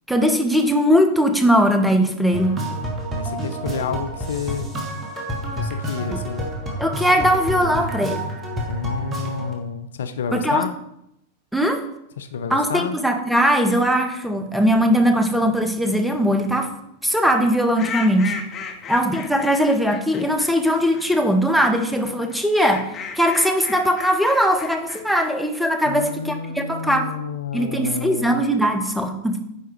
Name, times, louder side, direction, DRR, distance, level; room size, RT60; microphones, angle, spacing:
voice 1, 0.1-2.6 6.1-6.2 6.8-8.2 10.3-10.6 11.5-11.8 12.5-16.7 17.0-18.4 18.9-27.1 27.5-29.4, equal, ahead, 6 dB, 0.8 m, -20 dB
sound 1, 2.3-9.5, equal, 20° right, 1.5 m, -29 dB
voice 2, 3.1-4.6 5.6-6.5 8.7-10.7 12.2-13.0 25.9-28.4, left 6 dB, 65° left, 10 dB, 0.4 m, -29 dB
sound 2, 17.7-21.0 22.3-25.3, left 6 dB, 30° left, 1.0 m, -34 dB
9.2 x 4.7 x 3.0 m, 0.79 s
figure-of-eight pair, 90°, 0 cm